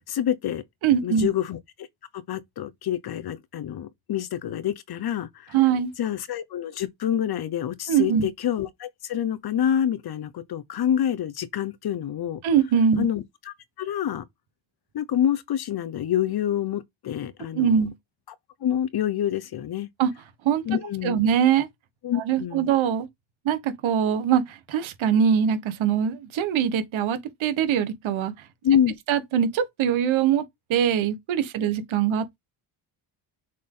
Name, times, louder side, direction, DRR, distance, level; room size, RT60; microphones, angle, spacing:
voice 1, 0.1-0.6 1.0-1.9 2.1-5.5 6.0-12.4 13.0-14.2 14.9-17.8 18.6-19.9 20.7-21.2 22.0-22.7 28.6-28.9 31.6-31.7, left 10 dB, 50° left, 0.9 m, -27 dB
voice 2, 0.8-1.3 5.5-5.9 7.9-8.3 12.4-13.1 17.5-17.9 20.0-20.1 20.4-20.6 21.0-21.7 22.2-23.1 23.4-28.3 29.1-30.4 30.7-32.4, right 8 dB, 70° right, 1.4 m, -22 dB
6.5 x 3.8 x 3.8 m
cardioid pair, 120°, 49 cm